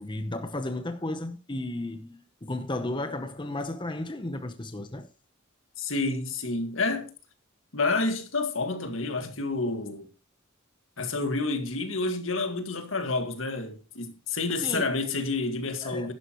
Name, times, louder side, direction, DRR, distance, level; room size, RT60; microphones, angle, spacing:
voice 1, 0.0-5.1 14.6-14.8 15.8-16.1, left 2 dB, 25° left, 0.9 m, -34 dB
voice 2, 5.8-7.1 7.7-10.1 11.0-16.1, left 3 dB, 75° left, 2.0 m, -29 dB
11.5 x 11.0 x 3.1 m
head